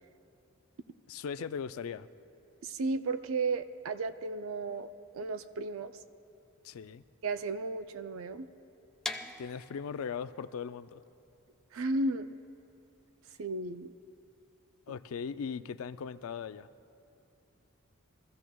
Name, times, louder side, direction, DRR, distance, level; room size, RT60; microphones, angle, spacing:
voice 1, 1.1-2.1 6.6-7.0 9.1-11.0 14.9-16.7, left 6 dB, 75° left, 13 dB, 0.4 m, -39 dB
voice 2, 2.6-5.9 7.2-8.5 11.7-12.3 13.4-13.9, right 3 dB, 70° right, 11 dB, 0.4 m, -34 dB
sound 1, 9.0-14.8, left 2 dB, 5° left, 0.4 m, -45 dB
23.0 x 15.0 x 2.3 m, 2.8 s
head